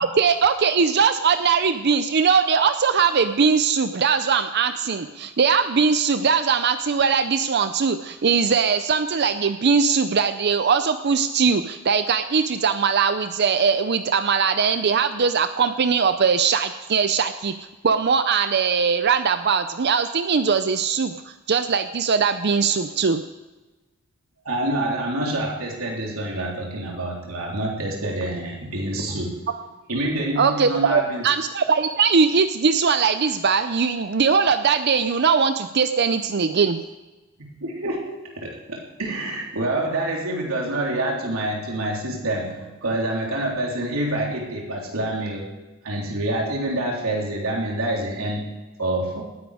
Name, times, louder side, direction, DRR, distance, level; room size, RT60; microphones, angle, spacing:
voice 1, 0.0-17.5 17.8-23.2 29.5-29.6 30.4-36.8, right 5 dB, 55° right, 10 dB, 0.6 m, -20 dB
voice 2, 24.4-29.4 29.9-31.2 37.6-45.5 45.8-49.2, right 1 dB, 90° right, -2 dB, 3.4 m, -27 dB
19.0 x 10.5 x 4.9 m, 1.2 s
head